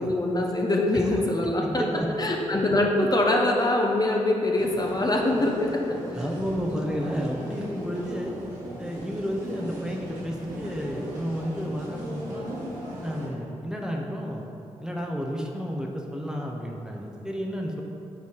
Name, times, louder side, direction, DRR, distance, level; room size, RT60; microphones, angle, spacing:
voice 1, 0.0-1.8 2.2-6.2 6.7-6.9, left 1 dB, 30° left, 0 dB, 0.9 m, -24 dB
voice 2, 1.6-2.1 6.1-8.4 8.8-12.5 13.0-14.4 14.8-17.8, equal, 5° right, -1 dB, 0.9 m, -31 dB
sound 1, 4.6-13.3, equal, 80° right, 1.4 m, -38 dB
6.0 x 4.4 x 4.6 m, 2.8 s
supercardioid pair, 40°, 13 cm